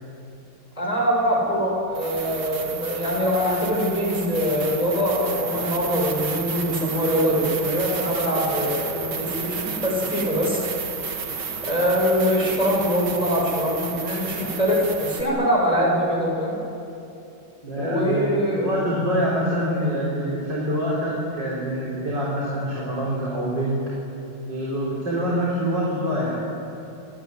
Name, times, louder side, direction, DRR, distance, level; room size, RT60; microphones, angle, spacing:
voice 1, 0.8-10.6 11.6-16.6 17.8-18.7, equal, 15° left, -3 dB, 6.2 m, -23 dB
sound 1, 1.2-1.3 1.9-15.2, right 5 dB, 75° right, 3.0 m, -32 dB
voice 2, 17.6-18.3 18.6-23.8 24.5-26.4, equal, 55° right, -5 dB, 5.0 m, -25 dB
28.5 x 18.0 x 9.8 m, 2.8 s
omnidirectional pair, 2.2 m